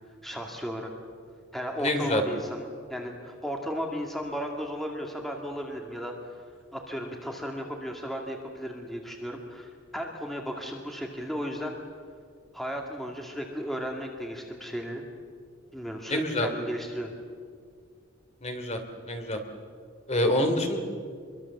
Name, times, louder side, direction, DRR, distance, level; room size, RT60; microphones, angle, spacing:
voice 1, 0.2-0.9 1.5-6.4 6.7-11.8 12.5-15.0 15.7-17.1, equal, ahead, 1 dB, 2.1 m, -35 dB
voice 2, 1.8-2.2 16.1-16.5 18.4-18.8 19.1-19.4 20.1-20.8, left 1 dB, 35° left, 5 dB, 2.9 m, -26 dB
26.0 x 23.0 x 7.3 m, 2.1 s
head